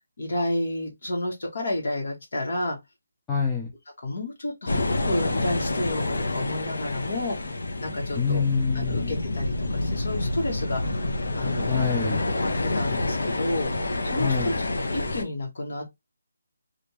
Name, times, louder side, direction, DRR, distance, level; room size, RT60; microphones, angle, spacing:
voice 1, 0.2-2.8 4.0-8.4 8.7-11.0 11.4-11.8 12.4-13.7 14.0-15.8, left 1 dB, 45° left, 1.3 m, -31 dB
voice 2, 3.3-3.7 8.2-9.2 11.7-12.2 14.2-14.5, left 6 dB, 5° left, 0.3 m, -25 dB
sound 1, 4.7-15.2, left 2 dB, 65° left, 0.8 m, -28 dB
3.4 x 2.4 x 2.9 m
hypercardioid pair, 180°, 0 cm